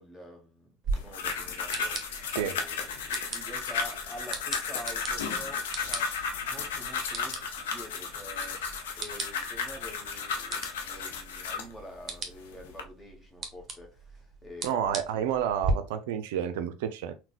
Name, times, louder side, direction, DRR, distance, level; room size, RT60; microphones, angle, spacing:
voice 1, 0.0-6.1 6.4-15.2, equal, 15° left, 1.2 m, -47 dB
sound 1, 0.8-15.7, right 4 dB, 35° right, 0.8 m, -40 dB
sound 2, 0.9-11.7 12.3-12.8, left 5 dB, 80° left, 0.6 m, -34 dB
voice 2, 14.6-17.1, right 9 dB, 75° right, 0.4 m, -30 dB
3.9 x 2.1 x 2.4 m
hypercardioid pair, 80°, 0 cm